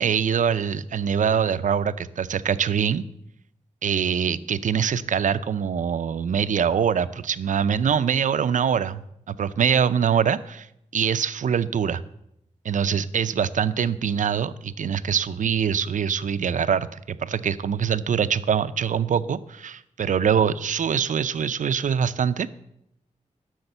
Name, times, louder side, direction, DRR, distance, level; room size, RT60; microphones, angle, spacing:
voice 1, 0.0-3.0 3.8-10.7 10.9-12.0 12.6-22.6, right 7 dB, 85° right, 13 dB, 0.5 m, -24 dB
12.5 x 6.4 x 7.9 m, 0.79 s
wide cardioid pair, 150°, 13 cm